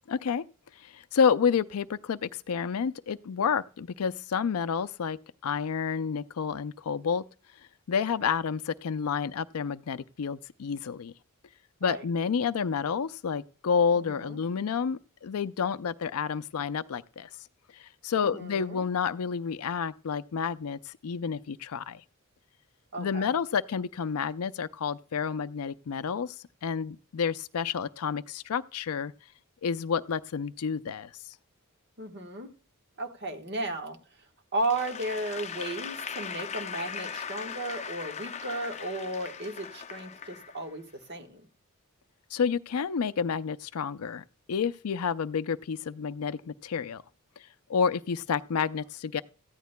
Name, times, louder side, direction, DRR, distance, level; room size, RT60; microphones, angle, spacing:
voice 1, 0.1-0.4 0.8-5.2 5.4-7.2 7.9-11.1 11.8-17.3 17.7-22.0 23.0-26.4 26.6-29.1 29.6-31.1 42.3-47.0 47.7-49.2, left 6 dB, 80° left, 0.4 m, -29 dB
voice 2, 14.0-14.4 18.2-18.8 22.9-23.3 32.0-32.5 33.0-34.0 34.5-41.5, right 2 dB, 50° right, 1.3 m, -35 dB
Applause / Crowd, 34.6-40.9, left 6 dB, 30° left, 0.6 m, -39 dB
17.5 x 14.0 x 2.2 m
head